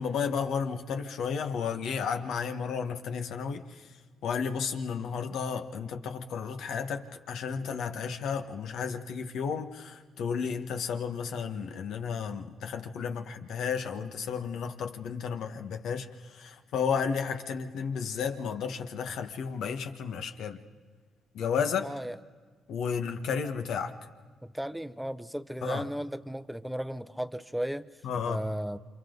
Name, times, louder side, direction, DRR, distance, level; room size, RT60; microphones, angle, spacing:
voice 1, 0.0-3.9 4.2-20.6 21.3-21.9 22.7-23.9 25.6-25.8 28.0-28.4, left 6 dB, 75° left, 6 dB, 1.7 m, -33 dB
voice 2, 21.8-22.2 24.4-28.0 28.3-28.8, equal, ahead, 12 dB, 0.9 m, -35 dB
29.5 x 27.0 x 4.0 m, 1.5 s
cardioid pair, 90°, 0 cm